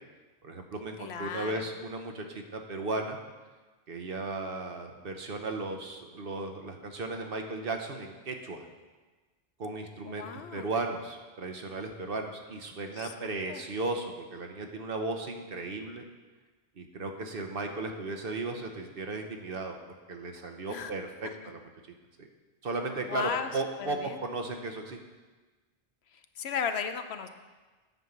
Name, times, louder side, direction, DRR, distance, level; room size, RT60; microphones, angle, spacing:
voice 1, 0.4-3.2 3.9-8.6 9.6-16.0 16.8-19.8 20.1-21.7 22.2-22.3 22.6-25.0, right 2 dB, 60° right, 4 dB, 1.1 m, -35 dB
voice 2, 1.0-1.6 10.0-10.7 12.9-13.6 20.7-20.9 21.2-21.3 23.0-23.5 23.8-24.2 26.4-27.3, left 7 dB, 75° left, 8 dB, 1.0 m, -35 dB
9.7 x 5.4 x 7.2 m, 1.3 s
omnidirectional pair, 1.1 m